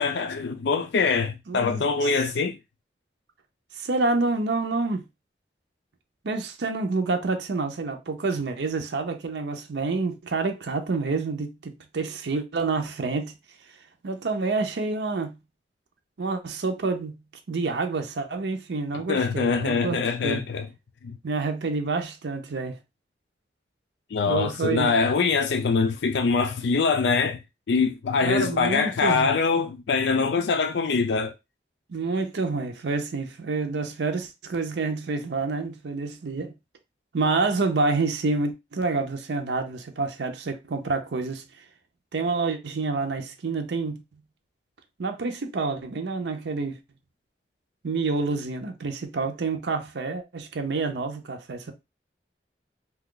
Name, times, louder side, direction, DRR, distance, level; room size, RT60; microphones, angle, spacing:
voice 1, 0.0-2.6 18.9-20.7 21.0-21.2 24.1-27.4 27.7-31.3, left 4 dB, 80° left, 0.4 m, -24 dB
voice 2, 1.5-2.1 3.8-5.0 6.2-13.3 14.0-15.4 16.2-17.1 17.5-20.4 21.2-22.8 24.3-24.9 28.2-29.3 31.9-36.5 37.1-41.4 42.1-44.0 45.0-46.8 47.8-51.7, right 3 dB, 80° right, 0.6 m, -28 dB
2.7 x 2.3 x 3.7 m
head